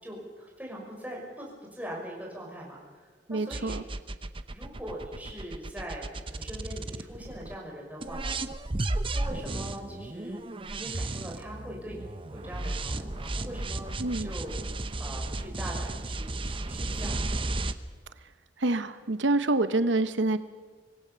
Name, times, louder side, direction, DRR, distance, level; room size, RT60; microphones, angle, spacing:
voice 1, 0.0-3.8 4.5-8.4 9.1-10.4 10.7-13.9 14.2-14.5 15.0-17.3, equal, 10° right, -3 dB, 5.7 m, -41 dB
voice 2, 3.3-3.8 14.0-14.3 18.6-20.4, right 2 dB, 90° right, 11 dB, 0.9 m, -26 dB
sound 1, 3.5-7.6 8.0-17.7, right 2 dB, 30° right, 0.8 m, -34 dB
25.5 x 19.0 x 6.9 m, 1.5 s
head